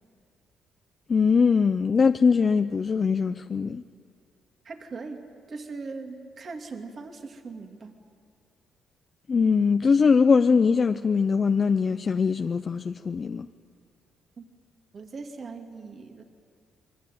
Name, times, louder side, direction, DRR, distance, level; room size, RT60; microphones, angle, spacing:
voice 1, 1.1-3.8 9.3-13.5, left 5 dB, 40° left, 0.6 m, -22 dB
voice 2, 4.6-8.0 14.4-14.5 14.9-16.2, right 4 dB, 45° right, 2.4 m, -40 dB
28.5 x 22.0 x 9.4 m
cardioid pair, 90°, 0 cm